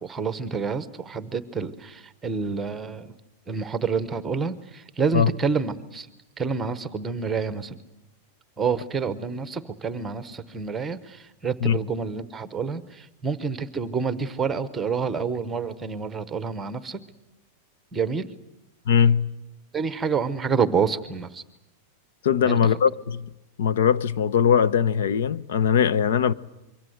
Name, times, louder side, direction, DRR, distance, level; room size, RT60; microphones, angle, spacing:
voice 1, 0.0-3.1 3.5-6.1 6.4-7.7 8.6-17.0 17.9-18.3 19.7-21.4 22.4-22.6, right 5 dB, 10° right, 1.0 m, -28 dB
voice 2, 18.9-19.3 22.2-23.3 23.6-26.3, left 7 dB, 75° left, 0.9 m, -20 dB
26.0 x 23.5 x 7.9 m
supercardioid pair, 175°, 0 cm